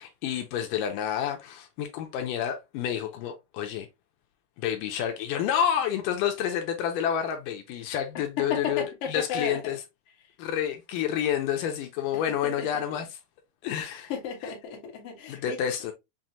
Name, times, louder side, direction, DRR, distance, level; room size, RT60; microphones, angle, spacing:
voice 1, 0.0-3.9 4.6-9.8 10.4-13.2 13.6-14.1 14.4-14.5 15.3-15.9, left 9 dB, 80° left, 2.3 m, -29 dB
voice 2, 8.4-9.6 12.3-12.8 14.1-15.9, left 6 dB, 55° left, 1.6 m, -34 dB
6.2 x 2.1 x 2.7 m
omnidirectional pair, 3.9 m